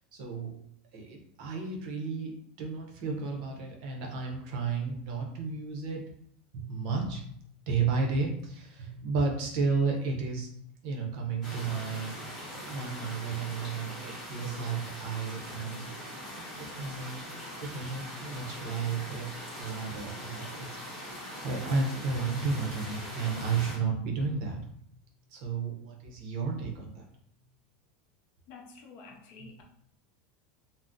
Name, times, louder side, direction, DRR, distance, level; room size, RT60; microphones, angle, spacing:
voice 1, 0.1-0.6 0.9-6.0 6.5-7.3 7.7-10.5 10.8-12.1 12.5-17.3 17.6-20.8 21.1-24.8 25.3-27.0 29.4-29.5, right 4 dB, 50° right, 1 dB, 0.6 m, -33 dB
sound 1, 11.4-23.8, equal, ahead, 0.9 m, -42 dB
voice 2, 28.5-29.6, left 4 dB, 40° left, 1 dB, 0.5 m, -49 dB
2.5 x 2.0 x 3.5 m, 0.68 s
supercardioid pair, 175°, 5 cm